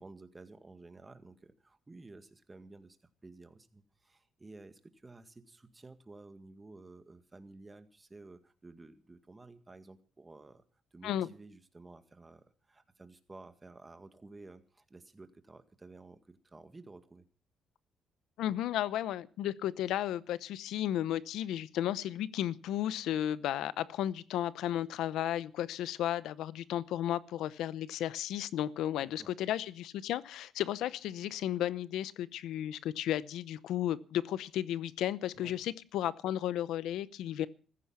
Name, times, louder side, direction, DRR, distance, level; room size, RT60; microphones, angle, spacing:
voice 1, 0.0-3.0 3.2-10.6 10.9-17.2 29.0-29.3 35.4-35.5, right 3 dB, 20° right, 9 dB, 2.0 m, -53 dB
voice 2, 18.4-37.5, left 12 dB, 85° left, 18 dB, 0.7 m, -34 dB
15.5 x 14.5 x 5.7 m, 0.40 s
cardioid pair, 90°, 0 cm